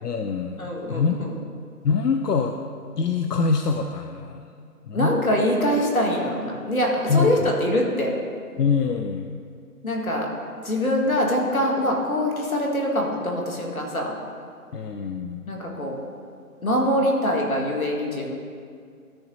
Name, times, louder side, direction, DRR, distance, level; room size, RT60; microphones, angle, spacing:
voice 1, 0.0-1.2 1.8-2.6 3.0-4.4 4.8-5.2 7.1-7.5 8.6-9.4 14.7-15.5, left 5 dB, 80° left, 5 dB, 0.7 m, -24 dB
voice 2, 0.6-1.3 4.9-8.1 9.8-10.3 10.6-14.2 15.5-16.0 16.6-18.3, left 1 dB, 60° left, -1 dB, 2.0 m, -24 dB
13.5 x 7.0 x 2.8 m, 2.2 s
figure-of-eight pair, 165°, 47 cm